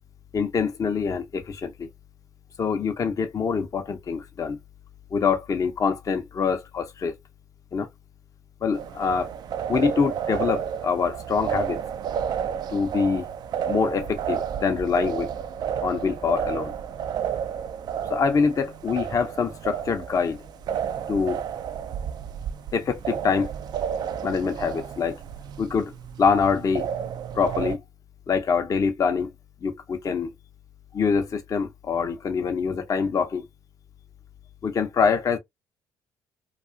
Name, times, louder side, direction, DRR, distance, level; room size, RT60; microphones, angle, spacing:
voice 1, 0.3-1.9 2.6-4.6 5.1-7.2 7.7-7.9 8.6-9.3 9.7-11.8 12.7-13.3 13.7-15.3 15.8-16.7 18.1-20.4 21.1-21.4 22.7-23.5 24.2-25.2 25.6-25.9 26.2-26.9 27.3-27.8 28.3-29.3 29.6-30.3 30.9-33.4 34.6-35.4, left 5 dB, 40° left, 0.6 m, -25 dB
sound 1, 8.7-27.8, right 8 dB, 55° right, 0.3 m, -31 dB
2.3 x 2.3 x 2.5 m
hypercardioid pair, 55°, 9 cm